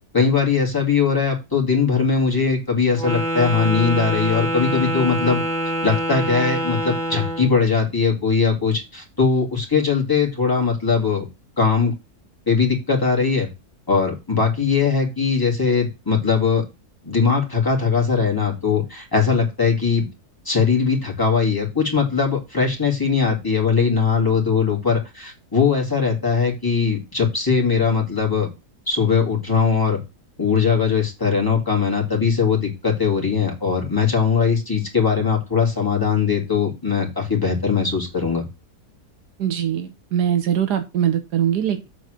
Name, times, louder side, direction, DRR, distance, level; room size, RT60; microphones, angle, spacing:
voice 1, 0.1-5.4 5.8-11.3 11.6-11.9 12.5-13.5 13.9-16.6 17.0-20.1 20.5-28.5 28.9-30.0 30.4-38.5, left 5 dB, 15° left, -1 dB, 2.4 m, -20 dB
Wind instrument woodwind instrument, 2.9-7.5, right 1 dB, 30° right, 1.6 m, -25 dB
voice 2, 39.4-41.9, right 9 dB, 85° right, 8 dB, 1.6 m, -22 dB
7.9 x 4.0 x 6.3 m, 0.25 s
omnidirectional pair, 1.7 m